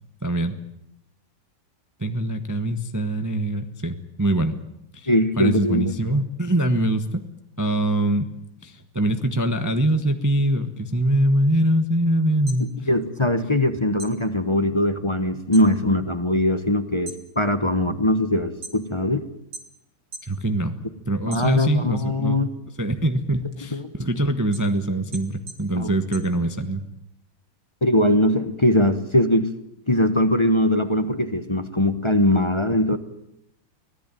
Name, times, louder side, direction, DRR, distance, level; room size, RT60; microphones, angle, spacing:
voice 1, 0.2-0.5 2.0-4.6 4.9-5.1 5.4-7.2 7.6-8.3 8.6-12.7 20.2-20.7 21.0-22.4 22.8-26.8, right 1 dB, 10° right, 7 dB, 0.9 m, -23 dB
voice 2, 5.1-5.9 12.9-19.2 21.3-22.5 23.7-23.9 25.7-25.9 27.8-29.5 29.9-33.0, left 1 dB, 20° left, 10 dB, 0.8 m, -21 dB
sound 1, 12.5-13.7 14.0-15.7 16.1-16.5 16.9-19.1 19.5-20.4 20.8-22.0 22.4-26.9, right 3 dB, 50° right, 3.4 m, -42 dB
25.0 x 17.0 x 9.1 m, 0.81 s
omnidirectional pair, 2.2 m